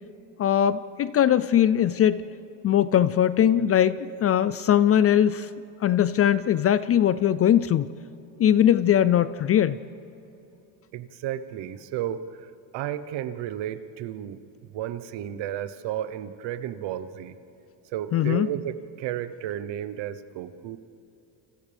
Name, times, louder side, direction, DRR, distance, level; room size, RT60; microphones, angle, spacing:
voice 1, 0.4-2.3 2.6-5.5 5.8-7.9 8.4-9.8 18.1-18.5, left 10 dB, 30° left, 15 dB, 0.4 m, -20 dB
voice 2, 10.9-14.4 14.7-17.4 17.9-20.8, right 11 dB, 65° right, 12 dB, 1.1 m, -33 dB
29.5 x 27.0 x 3.5 m, 2.9 s
cardioid pair, 125°, 47 cm